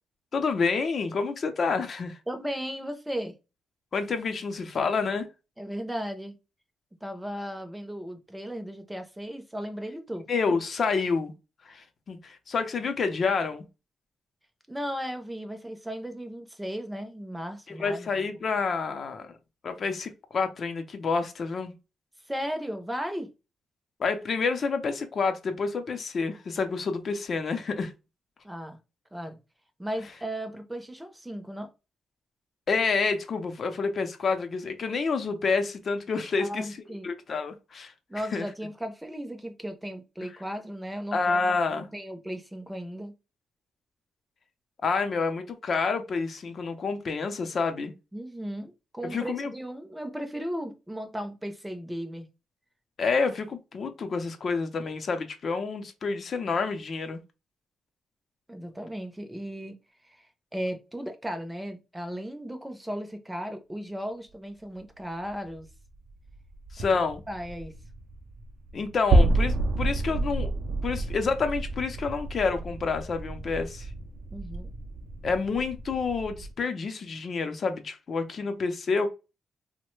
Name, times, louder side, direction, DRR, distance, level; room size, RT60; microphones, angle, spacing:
voice 1, 0.3-2.2 3.9-5.3 10.3-11.3 11.7-13.7 17.7-19.3 19.6-21.8 24.0-27.9 32.7-36.7 37.0-37.9 38.3-38.5 41.1-41.9 44.8-47.9 49.0-49.5 53.0-57.2 66.7-67.2 68.7-70.5 70.8-73.9 75.2-79.1, left 4 dB, 50° left, 0.5 m, -28 dB
voice 2, 2.3-3.4 5.6-6.4 7.0-10.3 14.7-18.1 22.3-23.3 28.4-28.8 29.1-29.4 29.8-31.7 36.4-37.1 38.1-41.3 41.7-43.1 48.1-52.3 58.5-59.8 60.0-65.7 66.8-67.0 67.3-67.7 74.3-74.7, equal, 5° right, 0.5 m, -36 dB
sound 1, 65.3-65.6 65.9-76.5, right 2 dB, 70° right, 0.4 m, -29 dB
3.1 x 2.1 x 3.0 m
cardioid pair, 100°, 0 cm